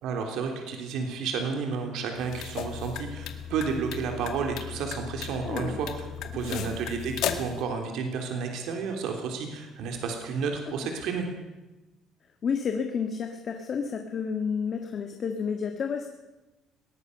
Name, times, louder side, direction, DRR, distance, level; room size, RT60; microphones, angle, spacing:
voice 1, 0.0-11.3, right 5 dB, 70° right, 3 dB, 3.5 m, -31 dB
sound 1, 2.1-7.6, left 9 dB, 65° left, 2.1 m, -36 dB
voice 2, 5.4-5.8 6.5-6.8 12.4-16.1, left 6 dB, 35° left, 5 dB, 1.6 m, -30 dB
21.0 x 18.0 x 6.8 m, 1.1 s
cardioid pair, 150°, 0 cm